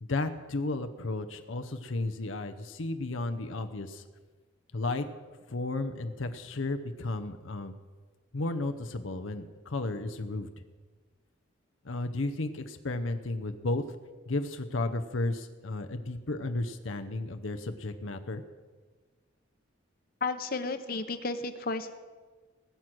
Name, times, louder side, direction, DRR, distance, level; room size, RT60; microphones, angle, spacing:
voice 1, 0.0-4.0 4.7-5.1 5.5-7.7 8.3-10.5 11.8-13.8 14.3-18.4, left 2 dB, 80° left, 7 dB, 0.8 m, -33 dB
voice 2, 20.2-21.9, left 3 dB, 45° left, 9 dB, 0.9 m, -33 dB
20.0 x 7.9 x 6.1 m, 1.4 s
head